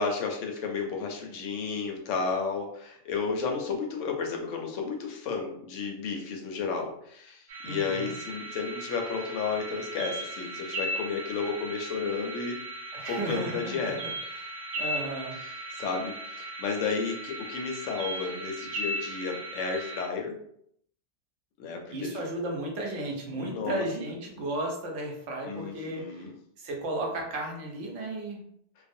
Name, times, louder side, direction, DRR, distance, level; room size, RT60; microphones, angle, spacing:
voice 1, 0.0-12.6 13.1-14.0 15.3-20.4 21.6-22.2 23.3-23.8 25.5-26.3, left 5 dB, 90° left, 2 dB, 0.9 m, -32 dB
sound 1, 7.5-20.1, right 1 dB, 60° right, 0.7 m, -37 dB
voice 2, 7.6-8.1 12.9-14.0 14.4-15.4 21.9-26.3 26.6-28.4, right 1 dB, 85° right, 1 dB, 1.0 m, -34 dB
2.4 x 2.0 x 2.5 m, 0.70 s
omnidirectional pair, 1.2 m